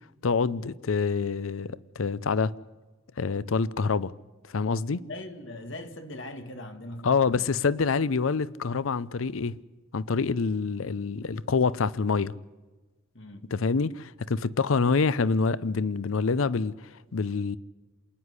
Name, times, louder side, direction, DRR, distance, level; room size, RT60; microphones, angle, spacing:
voice 1, 0.2-2.5 3.2-4.1 4.5-5.0 7.0-9.6 9.9-12.3 13.5-17.6, left 4 dB, 80° left, 0.6 m, -26 dB
voice 2, 5.0-7.5 13.1-13.5, left 1 dB, 65° left, 1.9 m, -40 dB
27.0 x 9.9 x 9.6 m
head